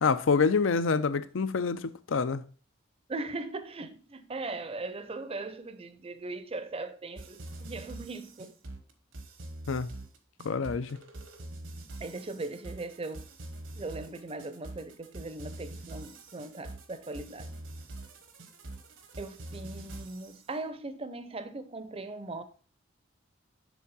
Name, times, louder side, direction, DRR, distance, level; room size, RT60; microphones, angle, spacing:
voice 1, 0.0-2.4 9.7-9.9 10.4-11.0, left 5 dB, 70° left, 0.5 m, -27 dB
voice 2, 3.1-8.5 12.0-13.3 13.7-17.6 19.2-22.4, right 2 dB, 30° right, 0.6 m, -39 dB
sound 1, 7.2-20.4, right 1 dB, 70° right, 1.1 m, -44 dB
7.0 x 3.6 x 5.4 m
head